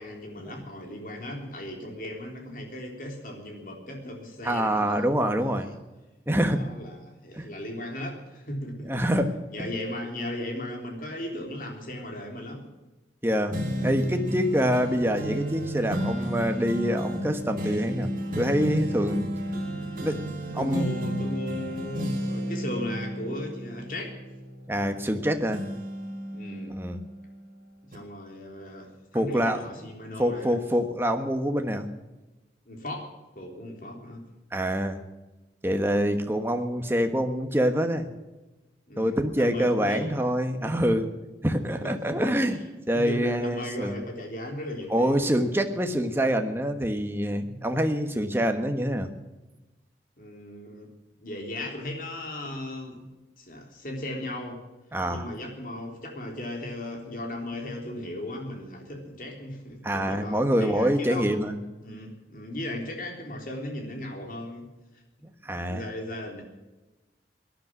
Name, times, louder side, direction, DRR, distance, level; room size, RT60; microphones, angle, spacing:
voice 1, 0.0-5.1 5.6-5.8 6.5-8.9 9.5-12.6 20.6-24.1 26.3-26.7 27.8-30.6 32.7-33.1 33.4-34.2 38.9-40.2 41.6-42.6 42.9-45.2 50.2-50.9 51.2-53.1 53.4-54.6 55.1-61.4 61.8-64.7 65.7-66.4, left 1 dB, 50° left, 2 dB, 3.6 m, -37 dB
voice 2, 4.4-5.7 6.3-6.6 7.3-7.5 8.8-9.7 13.2-18.1 18.3-19.3 19.9-20.8 24.7-25.6 26.7-27.0 29.1-29.6 30.2-31.9 34.5-35.0 35.6-38.1 39.0-41.1 41.4-42.6 42.9-43.9 44.9-49.1 54.9-55.3 59.8-61.6 65.4-65.8, equal, 15° right, 6 dB, 1.2 m, -26 dB
sound 1, 13.5-25.2 25.5-27.4 27.9-28.0, equal, 50° right, 3.0 m, -32 dB
18.5 x 11.0 x 6.2 m, 1.1 s
head